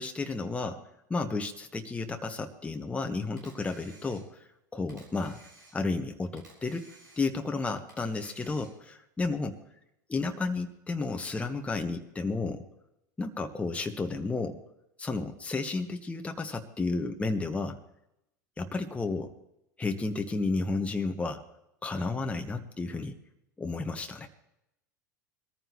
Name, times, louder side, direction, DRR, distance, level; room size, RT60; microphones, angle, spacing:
voice 1, 0.0-5.4 5.7-9.6 10.1-12.7 13.2-14.6 15.0-17.8 18.6-19.3 19.8-21.4 21.8-23.2 23.6-24.3, left 3 dB, 10° left, 4 dB, 1.2 m, -32 dB
Camera, 3.4-4.5 4.9-6.0 6.4-7.5 7.9-8.9, right 2 dB, 85° right, 4.5 m, -55 dB
22.5 x 14.0 x 3.0 m, 0.84 s
figure-of-eight pair, 80°, 10 cm